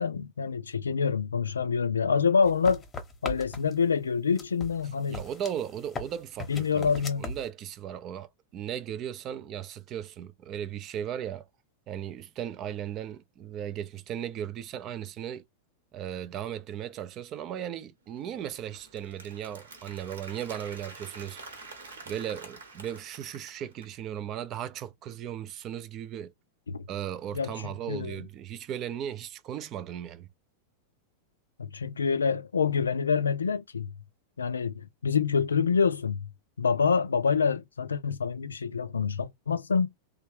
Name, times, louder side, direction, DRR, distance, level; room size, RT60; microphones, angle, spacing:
voice 1, 0.0-2.8 3.2-5.2 6.5-7.3 26.7-26.8 27.3-27.5 27.9-28.2 31.6-33.9 34.4-36.3 36.6-39.9, left 6 dB, 75° left, 0.3 m, -26 dB
sound 1, 2.4-3.9 4.4-7.5, left 3 dB, 20° left, 0.9 m, -39 dB
voice 2, 5.1-6.9 7.2-11.5 11.9-15.4 15.9-21.4 22.1-26.3 26.9-30.3, right 10 dB, 35° right, 0.4 m, -36 dB
Applause, 18.2-24.0, right 3 dB, 65° right, 1.1 m, -47 dB
3.2 x 2.3 x 3.2 m
figure-of-eight pair, 90°, 0 cm